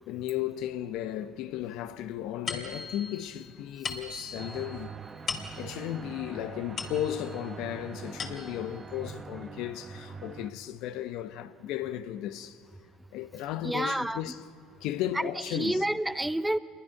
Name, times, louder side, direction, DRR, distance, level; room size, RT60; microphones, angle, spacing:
voice 1, 0.1-4.9 5.6-12.6 13.1-14.4 14.8-15.8, left 12 dB, 70° left, 1.0 m, -35 dB
sound 1, 2.5-7.5 7.9-8.8, left 5 dB, 45° left, 2.7 m, -40 dB
sound 2, 4.4-10.5, right 5 dB, 30° right, 1.2 m, -43 dB
voice 2, 13.6-14.2 15.1-16.6, right 1 dB, 5° right, 0.6 m, -29 dB
27.0 x 22.0 x 5.9 m
supercardioid pair, 85°, 0 cm